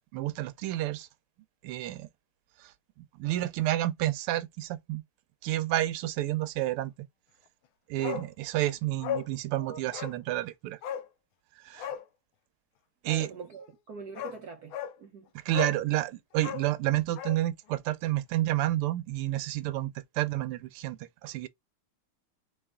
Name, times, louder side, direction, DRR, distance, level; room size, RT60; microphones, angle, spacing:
voice 1, 0.1-1.1 1.6-2.1 3.2-5.0 5.4-6.9 7.9-10.8 11.7-11.9 13.0-13.3 15.5-21.5, right 15 dB, 90° right, 1.5 m, -30 dB
Bark, 8.0-8.3 8.6-8.7 9.0-9.3 9.9-10.2 10.8-11.1 11.7-12.1 13.7-13.8 14.2-14.4 14.7-15.0 15.5-15.8 16.4-17.4 17.7-17.8, left 9 dB, 75° left, 1.4 m, -35 dB
voice 2, 13.0-15.3, right 5 dB, 70° right, 0.9 m, -43 dB
4.1 x 3.2 x 3.6 m
omnidirectional pair, 2.4 m